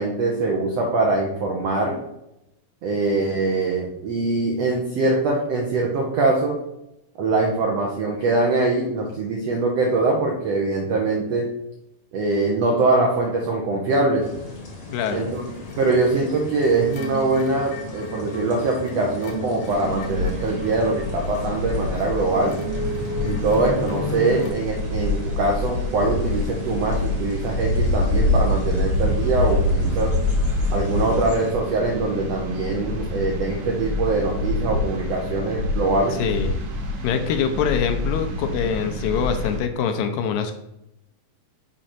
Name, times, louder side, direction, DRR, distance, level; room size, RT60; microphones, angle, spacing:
voice 1, 0.0-2.0 2.8-6.6 7.2-11.5 12.1-14.3 15.1-15.5 15.8-22.5 23.2-30.1 30.7-36.2, right 2 dB, 75° right, -1 dB, 1.4 m, -23 dB
sound 1, 14.2-31.5, left 3 dB, 45° left, 1.1 m, -38 dB
voice 2, 14.9-15.3 23.9-24.5 36.2-36.6 37.0-40.5, left 7 dB, 85° left, 7 dB, 2.3 m, -25 dB
sound 2, 15.3-24.5, equal, 65° left, 1.7 m, -34 dB
sound 3, 19.7-39.6, left 1 dB, 60° right, 2.3 m, -26 dB
6.4 x 5.0 x 4.3 m, 0.87 s
omnidirectional pair, 4.1 m